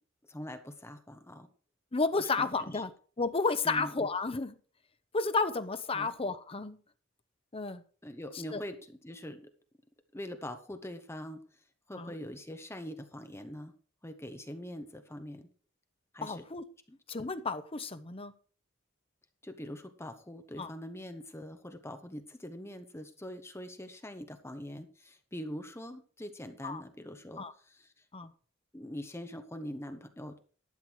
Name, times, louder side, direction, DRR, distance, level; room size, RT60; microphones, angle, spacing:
voice 1, 0.3-1.5 2.6-2.8 3.6-3.9 5.9-6.1 8.0-8.8 9.0-9.4 10.1-11.4 11.9-13.7 14.0-15.5 16.1-16.4 16.9-17.0 19.4-27.9 28.7-30.4, equal, 15° left, 8 dB, 1.1 m, -43 dB
voice 2, 1.9-2.9 3.2-4.6 5.1-6.8 7.5-7.8 8.5-8.6 11.9-12.1 16.2-16.6 17.1-18.3 20.6-20.7 26.6-26.8 27.4-27.5 28.1-28.3, left 3 dB, 30° left, 11 dB, 0.9 m, -32 dB
12.0 x 8.2 x 4.7 m, 0.40 s
head